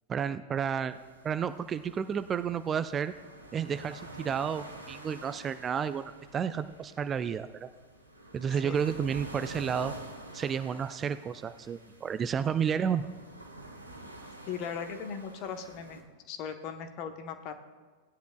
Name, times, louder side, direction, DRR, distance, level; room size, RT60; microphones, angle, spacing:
voice 1, 0.1-1.0 1.2-3.1 3.5-7.7 8.3-9.9 10.3-13.1, right 7 dB, 25° right, 12 dB, 0.4 m, -31 dB
sound 1, 0.9-16.0, right 1 dB, 85° right, 1.1 m, -48 dB
voice 2, 14.5-16.0 16.3-17.5, left 7 dB, 40° left, 7 dB, 1.0 m, -38 dB
16.5 x 10.0 x 2.3 m, 1.4 s
figure-of-eight pair, 90°, 0 cm